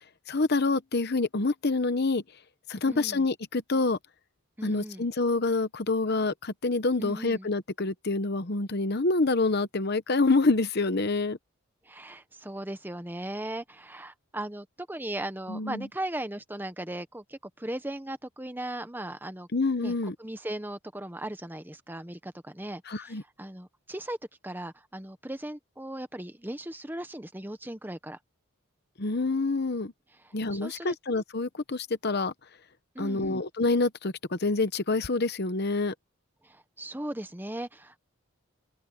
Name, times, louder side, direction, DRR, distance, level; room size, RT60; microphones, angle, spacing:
voice 1, 0.3-2.2 2.7-4.0 4.6-11.4 15.5-15.9 19.5-20.1 22.9-23.2 29.0-29.9 30.3-32.3 33.0-35.9, left 3 dB, 50° left, 1.0 m, -27 dB
voice 2, 2.9-3.3 4.6-5.1 7.0-7.5 11.8-19.5 19.8-19.9 20.2-24.2 24.4-28.2 30.2-31.0 32.9-33.4 36.4-38.0, right 1 dB, 10° right, 1.0 m, -38 dB
open air
head